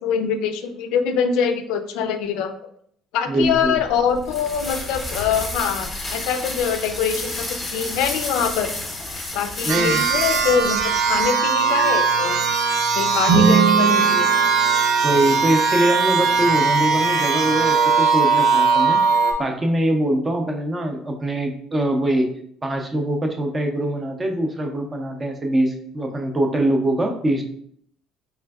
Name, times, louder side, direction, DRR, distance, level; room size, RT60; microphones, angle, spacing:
voice 1, 0.0-2.5 3.1-8.7 9.3-10.8 11.0-12.4 13.0-14.3, left 7 dB, 80° left, 8 dB, 0.4 m, -24 dB
voice 2, 3.3-3.8 9.7-10.0 15.0-22.3 22.6-27.4, right 1 dB, 15° right, 3 dB, 0.5 m, -23 dB
sound 1, 3.4-11.3, left 2 dB, 15° left, 0.8 m, -31 dB
sound 2, 9.7-19.3, right 5 dB, 65° right, 0.6 m, -19 dB
sound 3, 13.2-15.4, right 4 dB, 85° right, 0.9 m, -21 dB
4.2 x 3.3 x 2.3 m, 0.66 s
cardioid pair, 150°, 0 cm